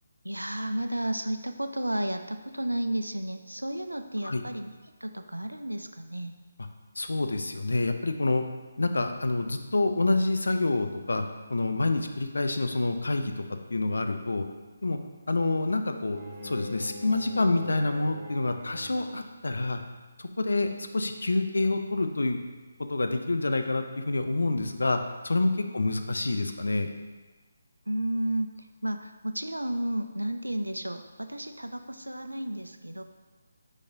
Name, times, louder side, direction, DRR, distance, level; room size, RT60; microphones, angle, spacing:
voice 1, 0.2-4.7 5.0-6.4 25.7-25.8 27.9-33.0, right 1 dB, 90° right, 7 dB, 0.4 m, -32 dB
voice 2, 7.0-8.4 8.8-11.2 11.5-13.4 13.7-14.5 14.8-15.0 15.3-19.8 20.2-22.4 22.8-26.9, left 2 dB, 70° left, 6 dB, 0.4 m, -27 dB
Bowed string instrument, 16.1-19.3, left 1 dB, 25° right, 0.7 m, -42 dB
4.9 x 4.1 x 2.6 m, 1.3 s
figure-of-eight pair, 145°, 0 cm